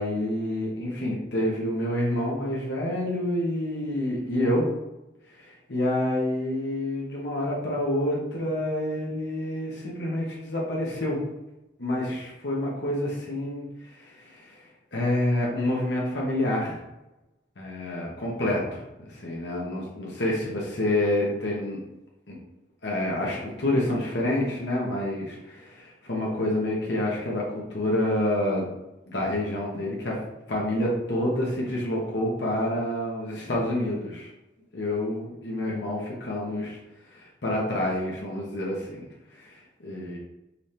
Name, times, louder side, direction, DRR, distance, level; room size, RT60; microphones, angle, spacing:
voice 1, 0.0-4.7 5.3-11.2 11.8-16.8 17.6-21.8 22.3-22.4 22.8-28.7 29.1-30.2 30.5-34.3 34.7-36.8 37.0-40.2, left 1 dB, 75° left, -3 dB, 1.0 m, -28 dB
5.6 x 3.3 x 2.8 m, 0.96 s
head